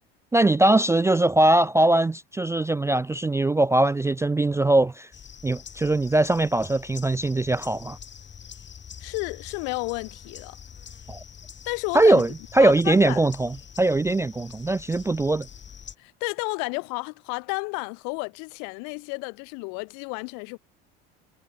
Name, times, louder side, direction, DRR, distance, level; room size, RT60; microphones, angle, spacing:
voice 1, 0.3-5.1 5.4-8.0 11.1-11.2 11.9-12.3 12.5-15.5, right 2 dB, 10° right, 0.3 m, -21 dB
sound 1, 5.1-16.0, left 7 dB, 35° left, 5.5 m, -45 dB
voice 2, 9.0-10.6 11.7-12.2 12.6-13.2 16.0-20.6, left 37 dB, 75° left, 2.2 m, -32 dB
supercardioid pair, 85°, 30 cm